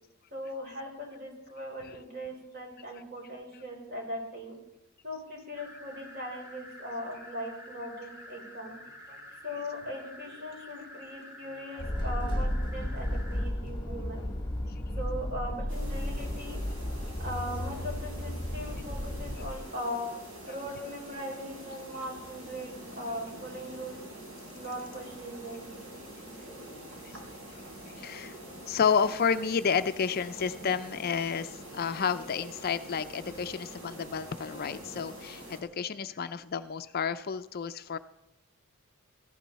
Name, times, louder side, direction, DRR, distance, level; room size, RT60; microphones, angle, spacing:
voice 1, 0.3-4.5 5.0-8.8 9.1-14.3 14.6-16.6 17.2-20.1 20.5-24.0 24.6-25.8, equal, 45° right, 0 dB, 4.5 m, -39 dB
sound 1, 5.6-13.4, left 1 dB, 15° right, 2.9 m, -49 dB
sound 2, 11.8-19.5, left 1 dB, 20° left, 1.2 m, -33 dB
sound 3, 15.7-35.6, right 1 dB, 70° right, 4.4 m, -46 dB
voice 2, 28.0-28.4 28.7-38.0, left 6 dB, 45° left, 12 dB, 0.4 m, -30 dB
17.0 x 14.5 x 4.1 m, 0.90 s
head